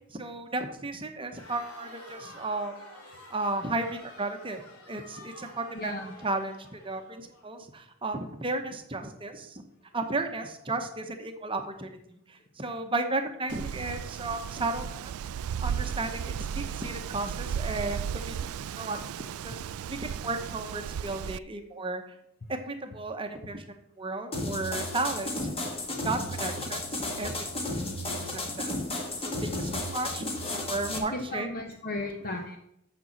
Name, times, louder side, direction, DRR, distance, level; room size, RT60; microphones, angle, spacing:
voice 1, 0.1-2.8 3.3-4.6 4.9-9.6 9.9-15.1 15.6-19.6 19.9-22.0 22.5-23.6 24.0-25.5 25.9-27.6 28.0-31.5, right 2 dB, 25° right, 6 dB, 0.9 m, -34 dB
Crowd, 1.3-7.5, left 1 dB, 80° left, 3.3 m, -50 dB
voice 2, 5.7-6.1 30.9-32.6, left 2 dB, 45° left, 4 dB, 0.9 m, -35 dB
Wind, 13.5-21.4, right 8 dB, 85° right, 0.3 m, -35 dB
sound 1, 24.3-31.0, left 2 dB, 25° left, 1.5 m, -33 dB
6.7 x 6.1 x 7.5 m, 0.76 s
head